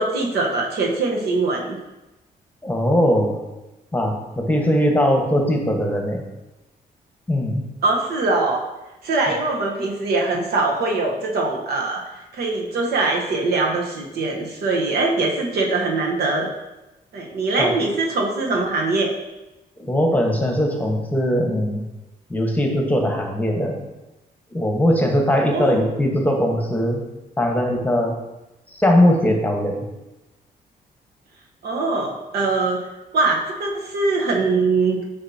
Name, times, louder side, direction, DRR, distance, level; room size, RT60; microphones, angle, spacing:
voice 1, 0.0-1.8 7.8-8.6 9.0-16.5 17.1-19.1 25.5-25.8 31.6-32.9 33.1-35.0, right 3 dB, 80° right, 0 dB, 1.1 m, -22 dB
voice 2, 2.6-3.4 3.9-6.2 7.3-7.7 17.6-17.7 19.8-21.8 22.3-23.8 24.5-27.0 27.4-28.1 28.7-29.8, equal, 10° left, 1 dB, 1.2 m, -20 dB
8.0 x 5.3 x 2.8 m, 1.0 s
cardioid pair, 85°, 16 cm